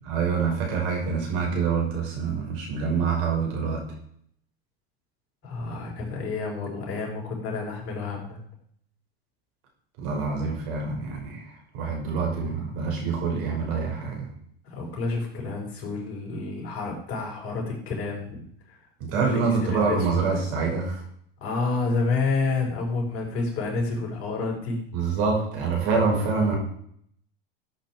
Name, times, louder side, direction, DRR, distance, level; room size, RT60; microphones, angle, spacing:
voice 1, 0.0-3.8 10.0-14.3 19.0-21.0 24.9-26.6, right 5 dB, 65° right, 0 dB, 6.0 m, -26 dB
voice 2, 5.4-8.4 14.6-18.4 18.7-18.8 19.1-20.2 21.4-24.8, left 3 dB, 45° left, 0 dB, 5.6 m, -29 dB
14.5 x 8.5 x 4.7 m, 0.66 s
hypercardioid pair, 90°, 31 cm